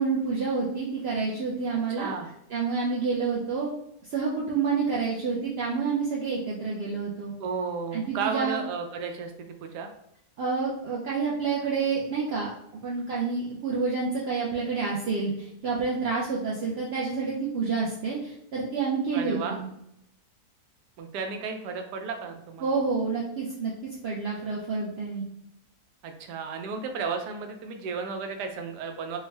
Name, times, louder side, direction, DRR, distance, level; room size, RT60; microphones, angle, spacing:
voice 1, 0.0-2.2 2.5-3.7 4.1-7.3 7.9-8.6 10.4-12.5 12.8-19.7 22.6-23.7 24.0-25.2, right 4 dB, 70° right, -5 dB, 0.6 m, -28 dB
voice 2, 1.9-2.3 7.4-9.9 19.1-19.6 21.0-22.8 26.0-29.2, right 5 dB, 90° right, 4 dB, 1.2 m, -33 dB
3.5 x 2.1 x 3.2 m, 0.78 s
omnidirectional pair, 1.7 m